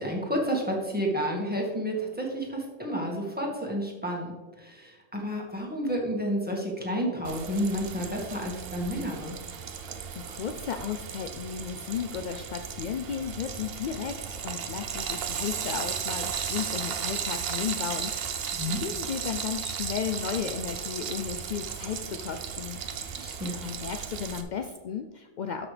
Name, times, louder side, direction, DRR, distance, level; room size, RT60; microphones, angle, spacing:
voice 1, 0.0-4.3 4.6-9.3 18.5-18.8 23.2-23.6, equal, 5° right, -2 dB, 1.7 m, -30 dB
Frying (food), 7.2-24.4, right 7 dB, 55° right, 0.8 m, -35 dB
voice 2, 9.8-18.5 18.8-23.2 23.6-25.7, left 7 dB, 70° left, 6 dB, 0.4 m, -34 dB
13.0 x 6.1 x 3.3 m, 1.3 s
omnidirectional pair, 1.3 m